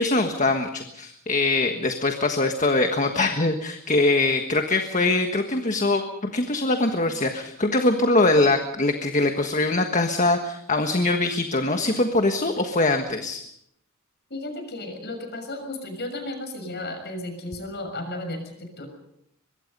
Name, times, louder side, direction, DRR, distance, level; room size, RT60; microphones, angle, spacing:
voice 1, 0.0-13.4, left 2 dB, 35° left, 5 dB, 1.4 m, -22 dB
voice 2, 14.3-18.9, left 1 dB, 50° left, 6 dB, 6.4 m, -34 dB
24.0 x 22.0 x 5.4 m, 0.75 s
head